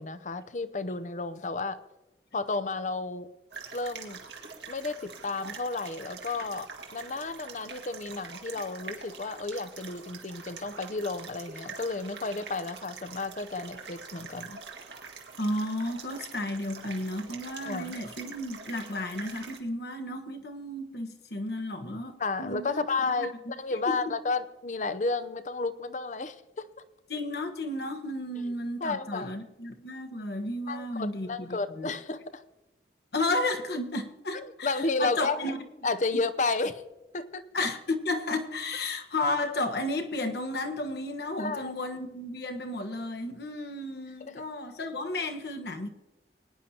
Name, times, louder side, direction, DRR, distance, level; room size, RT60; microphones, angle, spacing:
voice 1, 0.0-1.8 2.3-3.3 3.7-4.2 4.7-14.6 17.6-18.0 22.2-26.7 28.8-29.3 30.7-32.4 34.3-35.5 35.8-36.8 37.1-37.5 41.3-41.7 44.2-44.4, left 3 dB, 45° left, 13 dB, 0.6 m, -32 dB
sound 1, 3.5-19.6, right 5 dB, 75° right, 1.8 m, -45 dB
voice 2, 15.4-22.1 22.4-22.8 23.2-23.3 23.9-24.0 27.1-31.9 33.1-35.6 36.1-36.2 37.5-45.9, left 2 dB, 65° left, 6 dB, 1.2 m, -33 dB
22.0 x 10.0 x 2.9 m, 1.0 s
head